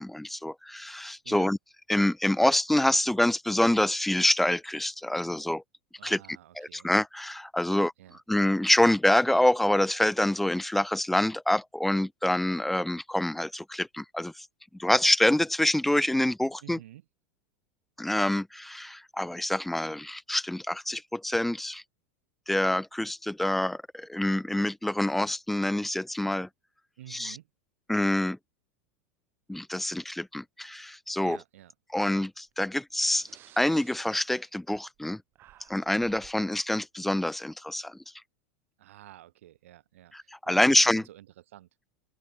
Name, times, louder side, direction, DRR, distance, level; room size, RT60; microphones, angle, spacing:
voice 1, 0.0-1.6 1.9-5.6 6.0-6.2 6.6-7.9 8.3-14.5 14.8-16.8 18.0-21.8 22.5-26.5 27.1-27.4 27.9-28.4 29.5-31.4 31.9-33.3 33.6-35.2 35.7-38.0 40.1-41.0, left 1 dB, ahead, 0.4 m, -26 dB
voice 2, 6.0-6.9 7.7-8.2 16.6-17.0 27.0-27.5 31.2-31.7 38.8-41.7, right 14 dB, 85° right, 3.6 m, -50 dB
Breathing, 32.5-32.6 33.1-35.1 35.3-36.4, right 14 dB, 30° right, 6.8 m, -57 dB
open air
supercardioid pair, 160°, 7 cm